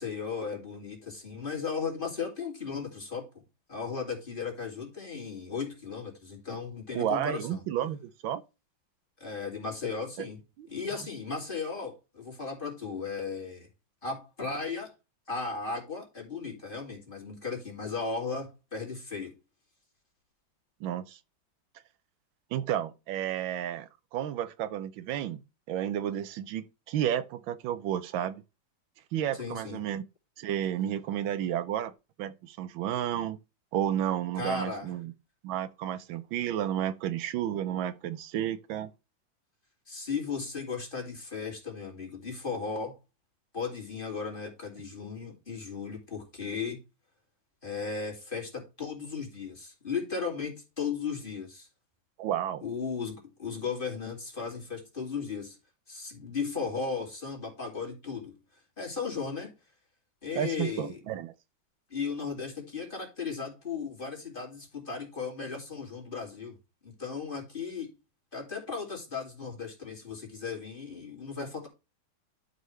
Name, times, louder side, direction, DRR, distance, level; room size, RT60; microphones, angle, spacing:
voice 1, 0.0-3.4 3.7-7.6 9.2-10.4 10.7-13.7 14.0-14.9 15.3-19.4 29.3-29.8 34.4-34.9 39.9-43.0 43.5-46.8 47.6-51.7 52.6-55.6 55.9-58.4 58.8-59.5 60.2-61.0 61.9-66.6 66.8-67.9 68.3-71.7, left 5 dB, 25° left, 2.7 m, -36 dB
voice 2, 6.9-8.4 10.6-10.7 20.8-21.2 22.5-25.4 25.7-28.4 29.1-30.0 30.4-31.9 32.2-33.4 33.7-35.1 35.4-38.9 52.2-52.6 60.3-61.3, right 10 dB, 85° right, 1.5 m, -32 dB
11.5 x 5.6 x 3.2 m
omnidirectional pair, 2.2 m